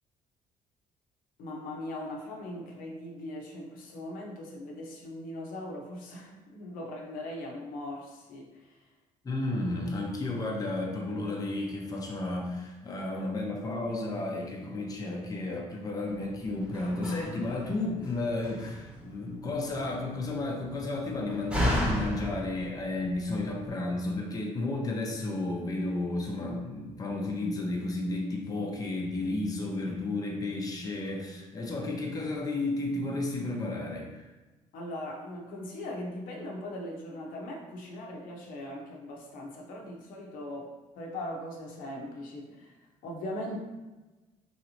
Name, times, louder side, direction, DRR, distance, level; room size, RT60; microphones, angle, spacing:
voice 1, 1.4-8.8 34.7-42.7 43.0-43.6, left 1 dB, 80° left, -1 dB, 0.7 m, -40 dB
voice 2, 9.2-34.3, left 2 dB, 25° left, -1 dB, 0.6 m, -32 dB
Slam, 16.1-23.7, left 1 dB, 5° right, 1.0 m, -35 dB
3.2 x 2.8 x 2.7 m, 1.2 s
cardioid pair, 90°, 14 cm